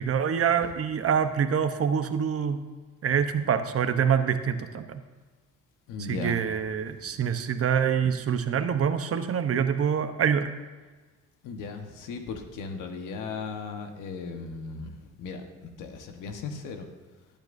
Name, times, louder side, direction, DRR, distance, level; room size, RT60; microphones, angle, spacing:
voice 1, 0.0-2.6 3.0-5.0 6.1-10.5, right 7 dB, 50° right, 9 dB, 0.9 m, -25 dB
voice 2, 5.9-6.4 6.9-7.2 11.4-16.9, left 4 dB, 90° left, 5 dB, 1.3 m, -37 dB
19.5 x 8.9 x 2.6 m, 1.3 s
cardioid pair, 90°, 30 cm